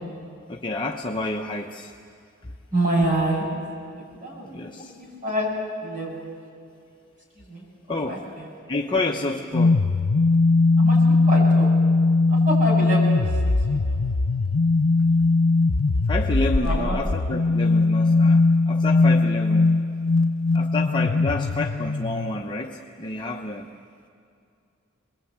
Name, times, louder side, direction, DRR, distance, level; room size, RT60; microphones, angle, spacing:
voice 1, 0.5-1.9 2.4-2.5 4.4-5.0 7.9-8.3 8.7-9.8 16.1-19.7 20.5-23.7, left 2 dB, 25° left, 0 dB, 0.9 m, -29 dB
voice 2, 2.7-3.5 4.2-5.5 5.8-6.2 7.5-7.6 8.1-8.5 10.8-11.7 12.5-13.3 13.8-14.0 16.6-17.0, right 1 dB, 40° right, -1 dB, 7.4 m, -27 dB
sound 1, 9.5-22.4, left 3 dB, 90° left, 0.7 m, -20 dB
26.0 x 21.5 x 8.7 m, 2.4 s
head